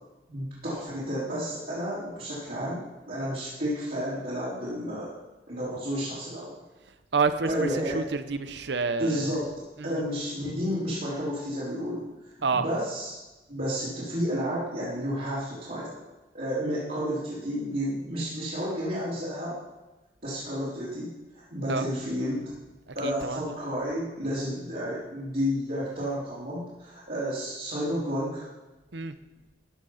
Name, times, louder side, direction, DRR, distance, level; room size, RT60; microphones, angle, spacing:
voice 1, 0.3-5.2 5.5-6.6 7.4-8.0 9.0-9.5 9.8-12.1 12.5-13.2 13.5-16.0 16.3-19.6 20.2-21.1 21.5-22.4 22.9-28.5, equal, 55° right, -12 dB, 3.6 m, -31 dB
voice 2, 7.1-9.3 9.8-9.9 12.4-12.6 21.7-21.9 23.0-23.4 28.9-29.1, right 4 dB, 70° right, 11 dB, 0.7 m, -28 dB
14.0 x 6.5 x 5.7 m, 1.1 s
head